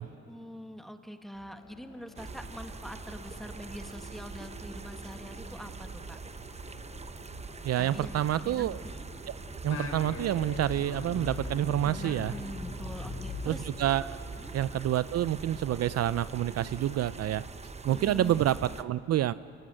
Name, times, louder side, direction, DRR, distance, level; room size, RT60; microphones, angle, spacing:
voice 1, 0.3-6.2 7.8-9.1 11.8-13.7 14.4-14.6 17.9-18.4, equal, ahead, 6 dB, 1.7 m, -44 dB
sound 1, 1.3-17.1, left 5 dB, 80° left, 3.3 m, -54 dB
sound 2, 2.2-18.8, right 4 dB, 20° right, 0.9 m, -43 dB
voice 2, 7.6-8.8 9.3-9.4 9.6-12.3 13.5-14.2 14.5-17.4 17.8-19.3, right 12 dB, 55° right, 16 dB, 0.5 m, -28 dB
Singing, 9.6-14.4, left 3 dB, 55° left, 3.4 m, -40 dB
26.0 x 20.0 x 7.7 m, 2.6 s
cardioid pair, 90°, 30 cm